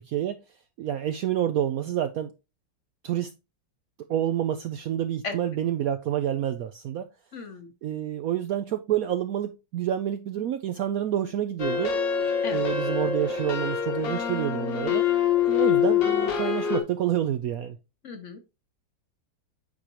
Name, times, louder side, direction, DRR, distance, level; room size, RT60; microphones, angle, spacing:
voice 1, 0.1-0.4 0.8-2.3 3.0-3.3 4.1-7.1 7.8-12.0 12.5-15.0 15.5-17.8, right 11 dB, 75° right, 0.8 m, -28 dB
voice 2, 7.3-7.7 12.4-12.6 18.0-18.4, left 4 dB, 50° left, 1.0 m, -36 dB
sound 1, 11.6-16.8, left 8 dB, 75° left, 2.0 m, -25 dB
8.1 x 4.9 x 2.9 m
omnidirectional pair, 2.0 m